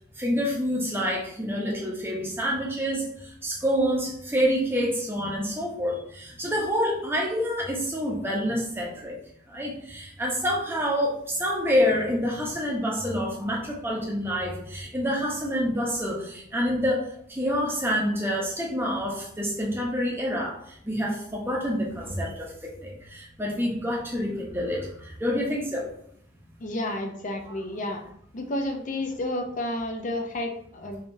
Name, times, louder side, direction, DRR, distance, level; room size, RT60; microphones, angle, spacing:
voice 1, 0.2-9.2 9.5-25.9 27.5-27.6, equal, 10° right, -2 dB, 0.8 m, -27 dB
voice 2, 26.6-28.0 28.3-31.0, left 1 dB, 40° left, 4 dB, 0.5 m, -31 dB
3.6 x 3.3 x 2.6 m, 0.69 s
head